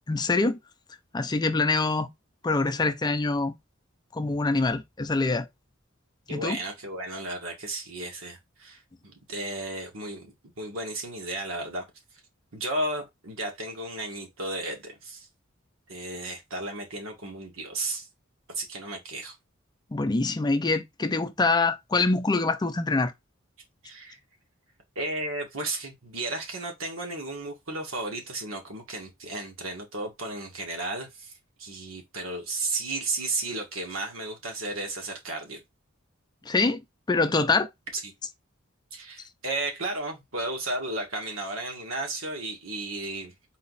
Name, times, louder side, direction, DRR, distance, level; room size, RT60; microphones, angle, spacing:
voice 1, 0.1-0.6 1.1-2.1 2.4-3.6 4.1-5.5 6.3-6.6 19.9-23.1 36.5-36.8 37.1-37.7, left 3 dB, 20° left, 0.4 m, -25 dB
voice 2, 6.3-11.9 12.5-15.3 15.9-18.1 18.5-19.4 23.8-24.2 25.0-31.3 31.6-35.6 37.9-38.1 38.9-43.6, right 2 dB, 90° right, 1.8 m, -34 dB
4.1 x 2.9 x 4.0 m
head